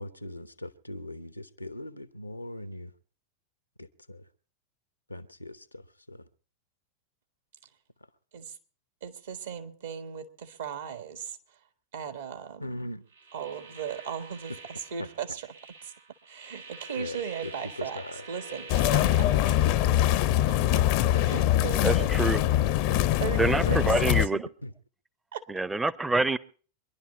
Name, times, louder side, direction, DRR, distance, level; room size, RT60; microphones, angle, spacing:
voice 1, 0.0-2.9 3.8-4.2 5.1-6.2 12.6-13.0 15.0-15.1 17.0-17.5 17.8-18.2 18.5-18.6 21.1-21.2 23.6-23.8 24.6-24.7, left 1 dB, 85° left, 0.8 m, -39 dB
voice 2, 9.0-11.4 11.9-12.9 13.3-15.5 15.8-15.9 16.3-18.0 18.3-19.6 20.7-22.1 22.9-24.5 25.3-25.4, right 7 dB, 65° right, 1.6 m, -37 dB
sound 1, 13.1-19.9, right 3 dB, 85° right, 6.3 m, -47 dB
sound 2, 18.7-24.3, left 13 dB, 45° left, 0.6 m, -23 dB
voice 3, 21.8-22.4 23.4-24.4 25.5-26.4, right 2 dB, 10° right, 0.6 m, -26 dB
23.5 x 11.0 x 4.3 m
figure-of-eight pair, 90°, 0 cm